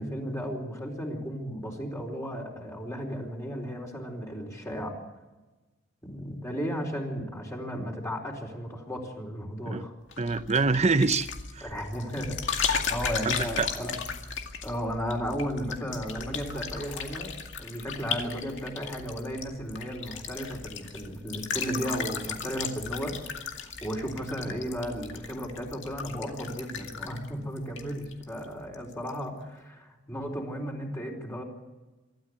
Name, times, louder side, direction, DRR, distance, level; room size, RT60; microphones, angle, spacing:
voice 1, 0.0-5.0 6.0-9.9 11.6-14.0 14.6-17.3 17.6-31.4, equal, 15° left, 4.4 m, -34 dB
sound 1, 10.1-28.4 28.7-29.2, left 6 dB, 65° left, 2.2 m, -36 dB
voice 2, 10.2-11.3 11.5-11.6 13.3-13.7, right 3 dB, 35° right, 0.8 m, -25 dB
25.0 x 13.5 x 8.5 m
head